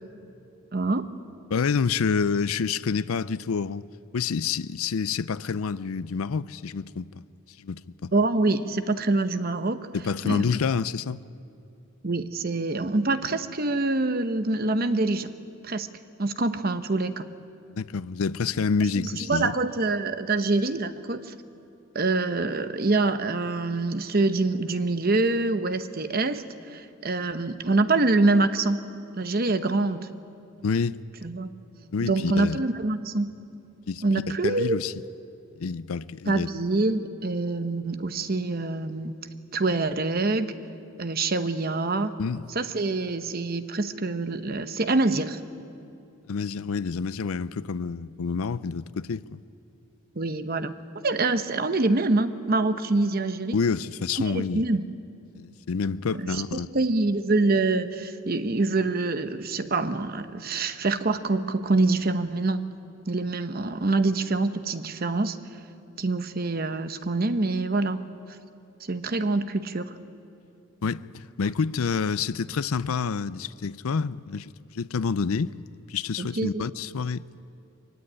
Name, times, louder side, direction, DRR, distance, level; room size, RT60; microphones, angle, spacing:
voice 1, 0.7-1.1 8.1-9.8 10.2-10.5 12.0-15.3 15.6-15.9 16.2-17.3 19.0-21.3 21.9-28.8 29.2-30.1 31.2-31.5 32.0-33.3 34.0-34.8 36.3-39.1 39.5-40.5 41.0-42.1 42.5-45.4 50.2-50.7 51.0-53.6 54.3-54.8 56.1-62.6 63.1-65.4 66.0-68.1 68.8-69.9 76.2-76.7, right 2 dB, 45° right, 0.9 m, -25 dB
voice 2, 1.5-3.8 4.1-7.1 7.6-8.1 9.9-11.2 17.7-19.5 30.6-31.0 31.9-32.6 33.9-34.0 34.4-34.9 35.6-36.5 42.2-42.4 46.3-49.4 53.5-54.6 55.4-56.7 70.8-75.5 75.9-77.3, left 5 dB, 80° left, 0.5 m, -28 dB
23.5 x 16.0 x 9.8 m
head